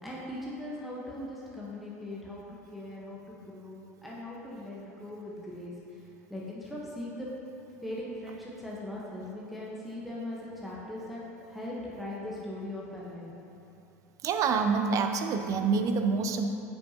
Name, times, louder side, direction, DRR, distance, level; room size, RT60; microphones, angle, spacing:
voice 1, 0.0-5.7 6.3-7.3 7.8-11.2 11.5-13.3, left 1 dB, ahead, -7 dB, 1.2 m, -40 dB
voice 2, 14.2-16.5, right 5 dB, 40° right, 6 dB, 0.5 m, -27 dB
8.6 x 5.5 x 2.9 m, 2.8 s
hypercardioid pair, 80°, 8 cm